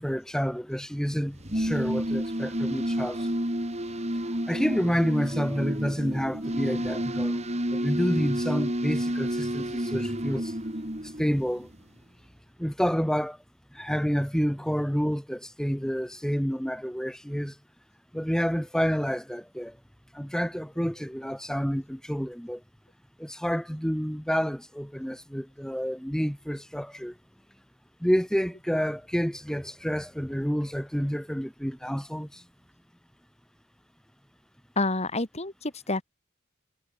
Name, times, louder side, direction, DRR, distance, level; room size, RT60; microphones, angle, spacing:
voice 1, 0.0-3.3 4.5-7.4 7.7-10.5 11.2-11.7 12.6-13.4 13.8-17.5 18.1-19.7 20.1-22.6 23.2-27.1 28.0-32.4, equal, 5° left, 5.2 m, -29 dB
sound 1, 1.3-11.7, equal, 35° right, 6.7 m, -30 dB
voice 2, 34.8-36.0, left 2 dB, 30° left, 2.9 m, -28 dB
head